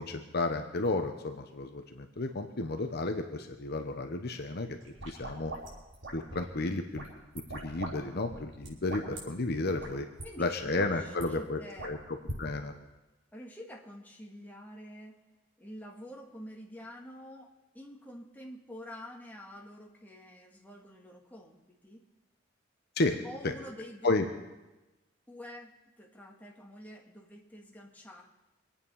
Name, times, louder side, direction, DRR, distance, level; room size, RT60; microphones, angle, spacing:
voice 1, 0.0-4.8 5.0-5.5 6.1-7.1 7.5-10.1 10.4-12.0 12.4-12.7 23.0-23.2 24.0-24.2, left 2 dB, 55° left, 6 dB, 1.0 m, -32 dB
sound 1, 4.8-6.5 6.9-7.9 8.2-9.2 9.8-9.9 10.2-10.3 10.6-11.2 11.8-12.4, right 2 dB, 90° right, 5.2 m, -41 dB
voice 2, 10.2-12.0 13.3-15.2 15.6-22.0 23.2-24.2 25.3-28.2, equal, 10° left, -1 dB, 2.1 m, -48 dB
24.5 x 8.9 x 5.6 m, 1.1 s
head